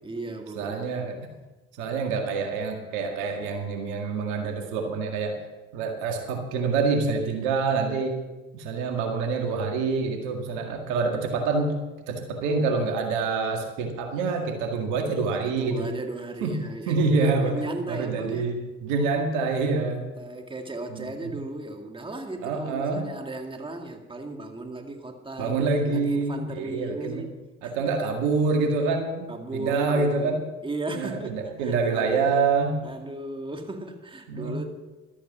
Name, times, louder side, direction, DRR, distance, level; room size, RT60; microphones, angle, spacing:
voice 1, 0.0-1.4 15.4-18.5 19.7-25.6 25.9-27.9 29.3-32.2 32.8-34.7, right 2 dB, 15° right, 4 dB, 2.2 m, -36 dB
voice 2, 0.6-1.2 1.8-5.3 5.7-8.2 8.5-11.8 12.1-15.9 16.4-16.5 16.9-17.6 17.9-20.0 20.9-21.3 22.4-23.1 25.4-27.2 27.6-30.4 30.9-32.8 34.3-34.7, right 4 dB, 75° right, 3 dB, 2.0 m, -26 dB
13.0 x 8.6 x 7.2 m, 1.2 s
hypercardioid pair, 60°, 30 cm